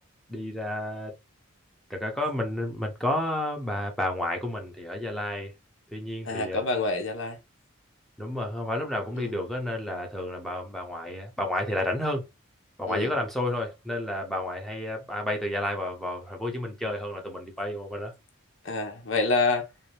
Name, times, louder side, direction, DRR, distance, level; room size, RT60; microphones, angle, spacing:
voice 1, 0.3-1.1 1.9-5.5 5.9-6.6 8.2-12.2 12.8-18.1, left 1 dB, ahead, 0.8 m, -31 dB
voice 2, 6.2-7.4 9.2-9.3 12.9-13.1 18.6-19.6, left 3 dB, 65° left, 0.8 m, -27 dB
3.8 x 2.7 x 3.2 m
head